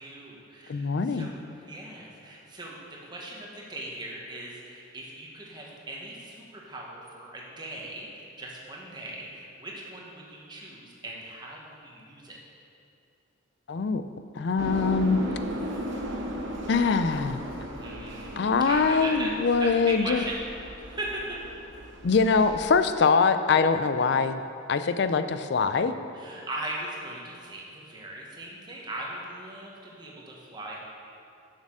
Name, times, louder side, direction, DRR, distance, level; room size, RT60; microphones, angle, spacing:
voice 1, 0.0-12.4 17.8-19.3 19.6-20.4 20.8-21.4 26.1-30.8, right 1 dB, 20° right, -3 dB, 1.2 m, -39 dB
voice 2, 0.7-1.3 13.7-14.0 14.4-15.2 16.7-17.4 18.4-20.2 22.0-24.4 24.7-25.9, left 5 dB, 60° left, 10 dB, 0.4 m, -23 dB
sound 1, 14.6-22.7, equal, 65° right, 1.0 m, -36 dB
6.9 x 6.5 x 6.3 m, 2.6 s
head